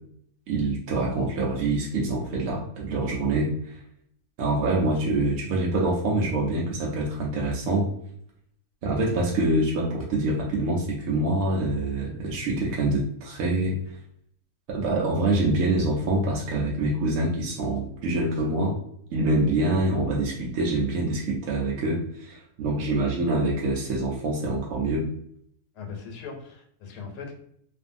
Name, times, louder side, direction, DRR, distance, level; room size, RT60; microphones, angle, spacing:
voice 1, 0.5-3.8 4.4-7.9 8.8-14.0 14.7-18.8 19.1-25.1, right 2 dB, 70° right, -3 dB, 0.9 m, -25 dB
voice 2, 25.7-27.3, left 5 dB, 85° left, 1 dB, 1.2 m, -39 dB
2.6 x 2.5 x 2.5 m, 0.69 s
omnidirectional pair, 1.7 m